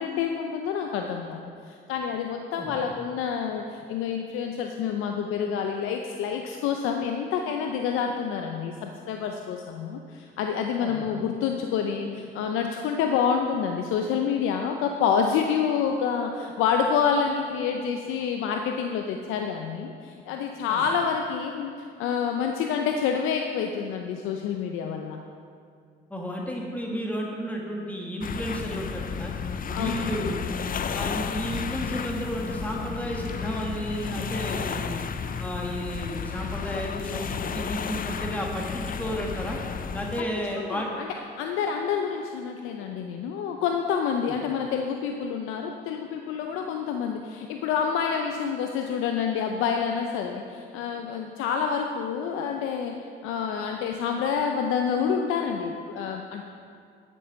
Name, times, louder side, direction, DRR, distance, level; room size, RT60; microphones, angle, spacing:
voice 1, 0.0-21.7 22.0-25.2 29.7-30.1 40.4-41.1 41.4-52.9 53.2-56.4, left 7 dB, 90° left, 3 dB, 0.6 m, -28 dB
voice 2, 26.1-29.3 29.7-30.4 30.9-35.0 35.4-39.6 39.9-40.9 44.3-44.4, equal, 5° left, -1 dB, 1.6 m, -32 dB
sound 1, 28.2-40.2, left 6 dB, 45° left, 0.6 m, -32 dB
10.0 x 6.9 x 5.3 m, 2.3 s
supercardioid pair, 65°, 20 cm